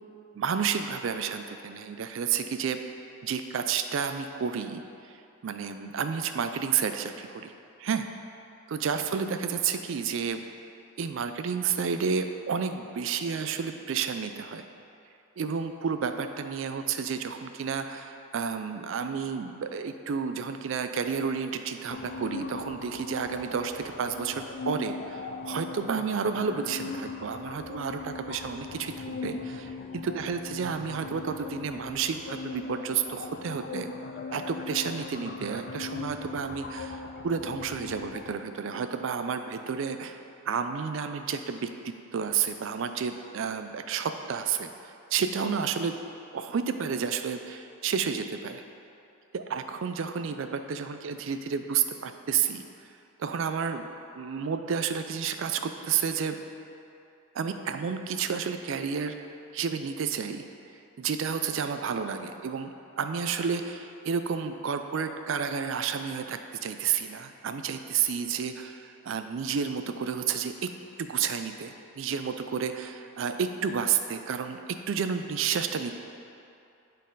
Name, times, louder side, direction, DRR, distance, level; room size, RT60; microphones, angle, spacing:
voice 1, 0.4-2.8 3.2-5.1 5.4-7.5 7.8-8.0 8.7-10.5 11.0-14.6 15.4-33.9 34.3-40.2 40.5-41.7 42.1-46.0 46.3-48.6 49.3-52.6 53.2-53.9 54.2-56.4 57.3-59.1 59.5-60.4 61.0-70.7 71.0-74.6 74.9-75.9, right 6 dB, 60° right, 8 dB, 0.4 m, -31 dB
sound 1, 21.9-38.3, left 4 dB, 45° left, 0.4 m, -39 dB
8.4 x 4.0 x 3.9 m, 2.6 s
head